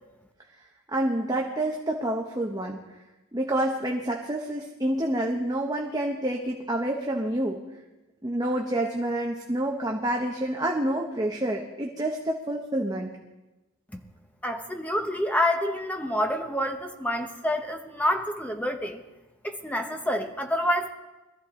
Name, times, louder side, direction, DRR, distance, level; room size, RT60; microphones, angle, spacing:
voice 1, 0.9-2.8 3.3-7.6 8.2-13.1, right 1 dB, 15° right, 0 dB, 1.1 m, -28 dB
voice 2, 14.4-19.0 19.4-20.9, left 1 dB, 5° left, 4 dB, 1.1 m, -27 dB
22.0 x 14.0 x 3.8 m, 1.1 s
head